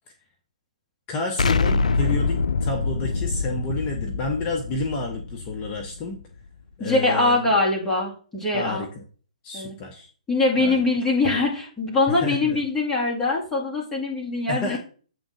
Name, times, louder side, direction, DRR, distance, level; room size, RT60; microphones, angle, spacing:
voice 1, 1.1-6.2 6.8-7.5 8.5-9.0 9.4-10.1 10.6-10.8 12.1-12.6 14.5-14.8, left 2 dB, 30° left, 3 dB, 0.9 m, -30 dB
Explosion, 1.4-6.2, left 4 dB, 80° left, 0.5 m, -25 dB
voice 2, 6.8-8.9 9.5-9.7 10.3-14.8, left 2 dB, 10° left, -4 dB, 2.2 m, -23 dB
7.9 x 3.7 x 5.0 m, 0.41 s
hypercardioid pair, 135°, 4 cm